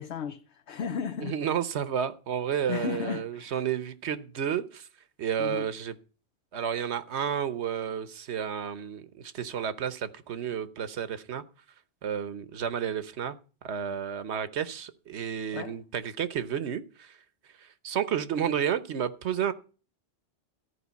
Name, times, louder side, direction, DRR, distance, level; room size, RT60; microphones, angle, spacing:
voice 1, 0.0-1.4 2.7-3.5 5.4-5.7 15.5-15.8, left 7 dB, 75° left, 1.1 m, -34 dB
voice 2, 1.2-4.9 5.2-6.0 6.5-11.4 12.0-13.4 13.6-17.2 17.6-19.5, right 8 dB, 80° right, 1.2 m, -31 dB
14.0 x 4.9 x 8.2 m
omnidirectional pair, 1.1 m